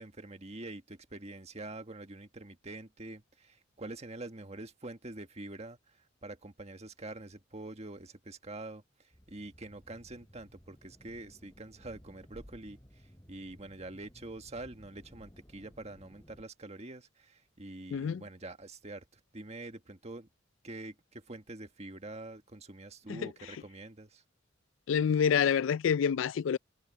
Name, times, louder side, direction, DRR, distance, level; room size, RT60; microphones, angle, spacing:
voice 1, 0.0-20.3 20.6-24.2, right 2 dB, 35° right, 1.6 m, -46 dB
sound 1, 9.1-16.4, equal, 15° left, 7.9 m, -57 dB
voice 2, 17.9-18.2 23.1-23.3 24.9-26.6, left 7 dB, 80° left, 0.4 m, -27 dB
head